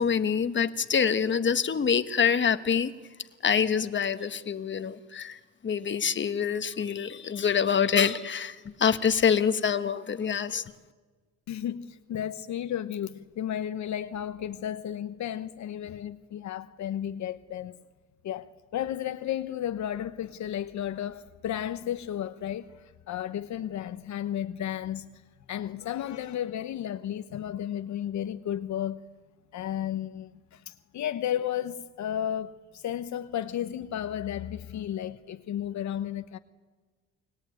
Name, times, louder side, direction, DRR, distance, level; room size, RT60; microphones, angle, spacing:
voice 1, 0.0-2.9 3.4-5.4 5.6-10.6, left 7 dB, 40° left, 1.3 m, -26 dB
voice 2, 11.5-17.8 18.2-22.8 23.1-25.1 25.5-29.0 29.5-36.4, left 10 dB, 70° left, 1.0 m, -33 dB
30.0 x 20.5 x 9.2 m
cardioid pair, 90°, 30 cm